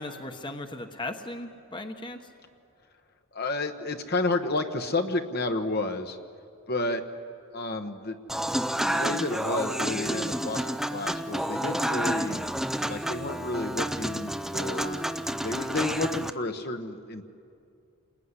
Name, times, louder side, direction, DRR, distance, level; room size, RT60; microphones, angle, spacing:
voice 1, 0.0-2.2, left 2 dB, 20° left, 6 dB, 1.1 m, -37 dB
voice 2, 3.3-6.2 6.7-7.0 7.5-8.2 8.9-12.5 12.8-15.0 15.4-17.2, left 2 dB, 45° left, 6 dB, 1.2 m, -31 dB
Human voice / Acoustic guitar / Piano, 8.3-16.3, right 1 dB, ahead, 0.6 m, -30 dB
28.5 x 20.5 x 9.7 m, 2.5 s
head